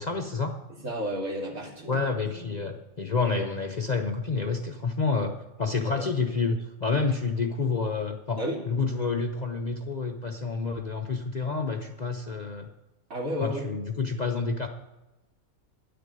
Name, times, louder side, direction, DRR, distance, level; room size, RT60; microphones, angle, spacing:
voice 1, 0.0-0.5 1.9-8.4 8.7-12.7 13.4-14.7, left 4 dB, 45° left, 4 dB, 0.6 m, -29 dB
voice 2, 0.7-2.0 2.4-2.5 5.9-6.1 8.4-8.6 13.1-13.6, equal, 75° right, -2 dB, 2.9 m, -32 dB
10.5 x 6.7 x 9.0 m, 1.0 s
omnidirectional pair, 1.4 m